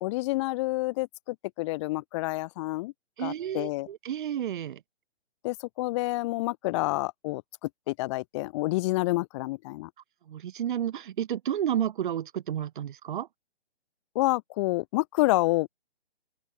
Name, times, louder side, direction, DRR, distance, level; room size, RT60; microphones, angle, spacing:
voice 1, 0.0-2.9 3.2-3.9 5.4-9.9 14.1-15.7, left 21 dB, 25° left, 1.4 m, -28 dB
voice 2, 3.2-4.8 10.3-13.3, right 10 dB, 50° right, 0.9 m, -31 dB
open air
hypercardioid pair, 145°, 33 cm